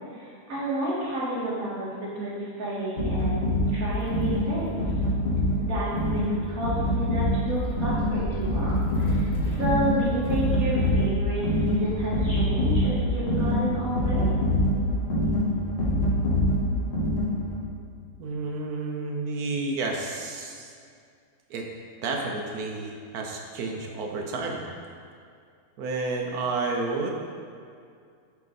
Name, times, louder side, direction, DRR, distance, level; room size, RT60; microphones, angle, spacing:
voice 1, 0.1-4.8 5.6-14.3, right 1 dB, 65° right, -9 dB, 2.3 m, -31 dB
sound 1, 3.0-17.6, equal, 60° left, 1.5 m, -25 dB
sound 2, 3.9-14.1, equal, 75° left, 1.5 m, -37 dB
voice 2, 18.2-20.7 21.5-21.7 22.0-24.6 25.8-27.1, right 3 dB, 85° right, 1 dB, 1.3 m, -30 dB
7.4 x 4.8 x 4.1 m, 2.3 s
omnidirectional pair, 1.6 m